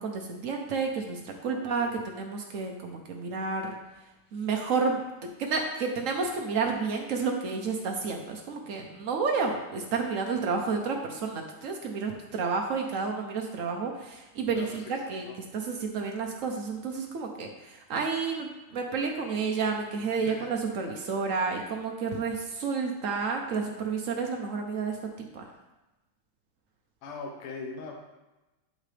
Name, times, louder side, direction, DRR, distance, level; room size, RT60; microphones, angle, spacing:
voice 1, 0.0-3.7 4.3-15.3 15.5-25.0 25.3-25.5, right 4 dB, 85° right, 2 dB, 0.7 m, -30 dB
voice 2, 1.5-1.9 14.5-15.0 15.3-15.4 20.2-20.5 27.0-28.0, left 3 dB, 85° left, 1 dB, 1.9 m, -41 dB
8.8 x 6.4 x 3.3 m, 1.1 s
omnidirectional pair, 2.4 m